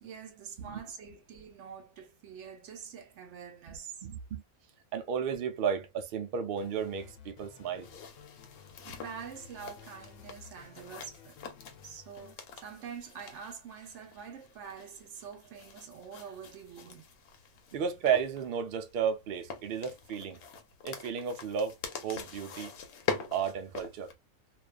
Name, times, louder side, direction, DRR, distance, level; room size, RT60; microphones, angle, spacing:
voice 1, 0.0-4.0 8.8-11.4 11.8-17.0, right 7 dB, 65° right, 0.9 m, -46 dB
voice 2, 4.0-4.4 4.9-7.9 17.7-20.4 20.8-21.7 22.0-22.7 23.3-24.1, right 7 dB, 80° right, 0.5 m, -33 dB
sound 1, 6.5-12.4, left 8 dB, 65° left, 0.9 m, -54 dB
sound 2, 7.8-24.1, left 6 dB, 85° left, 1.1 m, -44 dB
2.5 x 2.2 x 2.2 m
omnidirectional pair, 1.5 m